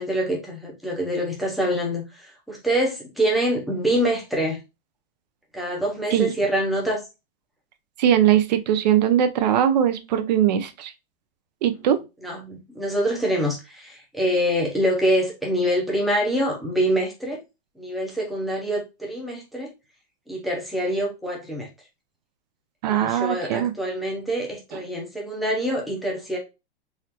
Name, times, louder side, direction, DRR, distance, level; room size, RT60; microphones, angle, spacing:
voice 1, 0.0-4.6 5.5-7.0 12.2-17.4 17.8-19.7 20.3-21.7 22.9-26.4, equal, ahead, 0.7 m, -25 dB
voice 2, 8.0-10.9 11.6-12.0 22.8-23.7, right 10 dB, 45° right, 0.6 m, -20 dB
3.7 x 3.1 x 2.8 m
supercardioid pair, 170°, 29 cm